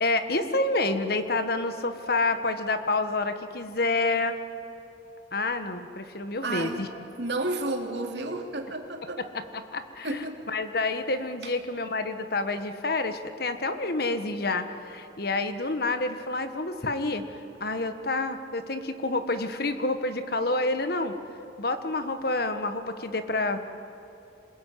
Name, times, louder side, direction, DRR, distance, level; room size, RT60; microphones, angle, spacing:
voice 1, 0.0-4.4 5.3-6.9 9.2-17.3 17.6-21.1 21.6-23.6, left 2 dB, 55° left, 9 dB, 1.4 m, -28 dB
voice 2, 6.4-6.8 7.2-9.2 10.0-10.4, right 2 dB, 65° right, 3 dB, 2.9 m, -31 dB
27.0 x 21.0 x 9.5 m, 2.8 s
head